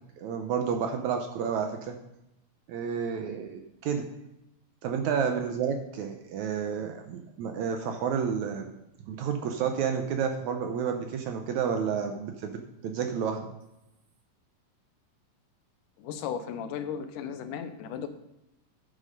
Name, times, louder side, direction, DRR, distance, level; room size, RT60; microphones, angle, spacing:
voice 1, 0.2-2.0 2.7-4.1 4.8-8.7 9.1-13.5, right 7 dB, 75° right, 5 dB, 1.8 m, -30 dB
voice 2, 16.0-18.1, left 7 dB, 80° left, 9 dB, 2.1 m, -35 dB
9.3 x 6.8 x 5.2 m, 0.88 s
omnidirectional pair, 3.9 m